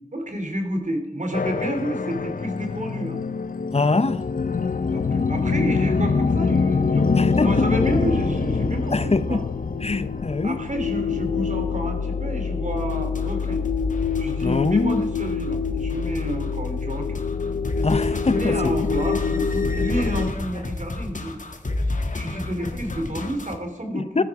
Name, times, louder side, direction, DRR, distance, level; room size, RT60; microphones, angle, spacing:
voice 1, 0.1-3.2 4.8-7.1 7.4-9.4 10.4-13.6 14.2-17.2 18.0-21.4 22.1-24.2, right 1 dB, 60° right, 3.0 m, -30 dB
sound 1, 1.3-20.3, left 5 dB, 85° left, 0.7 m, -25 dB
voice 2, 3.7-4.2 7.1-7.6 8.9-9.4 9.8-10.6 14.4-15.0 17.8-18.9 23.9-24.2, left 3 dB, 50° left, 0.6 m, -23 dB
sound 2, 12.7-23.6, left 2 dB, 65° left, 1.6 m, -32 dB
14.5 x 13.0 x 4.8 m
wide cardioid pair, 55°, 14 cm